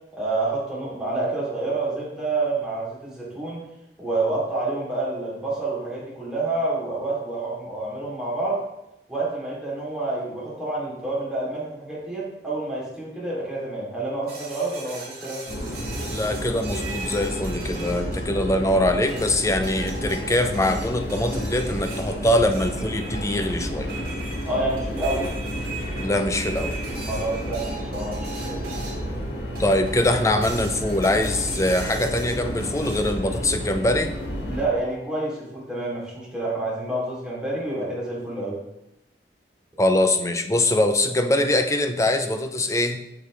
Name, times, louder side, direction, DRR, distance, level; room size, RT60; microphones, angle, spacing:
voice 1, 0.1-3.6 4.0-8.6 9.1-15.4 24.5-25.3 27.1-28.6 34.5-38.6, right 2 dB, 5° right, -7 dB, 3.2 m, -28 dB
sound 1, 14.3-18.6 19.1-29.1 29.5-30.1 30.4-33.2, right 3 dB, 55° right, 3.4 m, -39 dB
sound 2, 15.5-34.7, equal, 85° left, 2.0 m, -31 dB
voice 2, 16.1-23.9 26.0-26.8 29.6-34.1 39.8-43.0, left 1 dB, 15° left, 6 dB, 0.6 m, -23 dB
8.8 x 7.0 x 3.4 m, 0.89 s
head